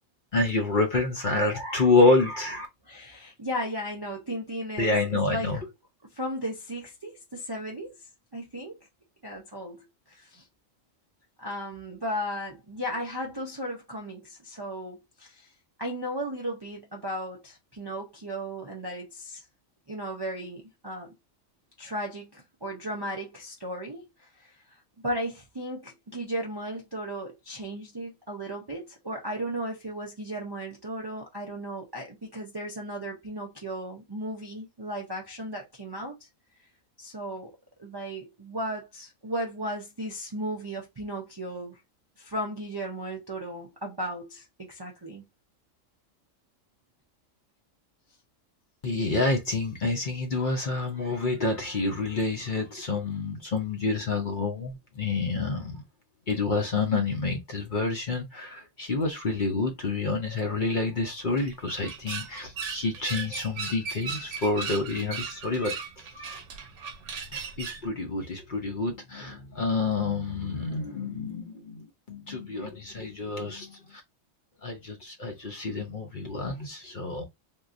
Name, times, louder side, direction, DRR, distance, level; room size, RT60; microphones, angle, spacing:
voice 1, 0.3-2.7 4.8-5.6 48.8-55.8 56.3-66.4 67.3-74.0 74.6-77.2, left 3 dB, 50° left, 0.7 m, -28 dB
voice 2, 2.9-5.6 6.1-8.0 8.3-8.8 9.2-10.4 11.4-15.5 15.8-19.4 19.9-21.1 21.8-24.6 25.0-36.3 37.0-37.5 37.8-41.8 42.2-45.2, equal, 35° right, 0.4 m, -35 dB
sound 1, 61.2-67.9, right 6 dB, 70° right, 1.0 m, -37 dB
3.7 x 2.6 x 2.5 m
omnidirectional pair, 1.4 m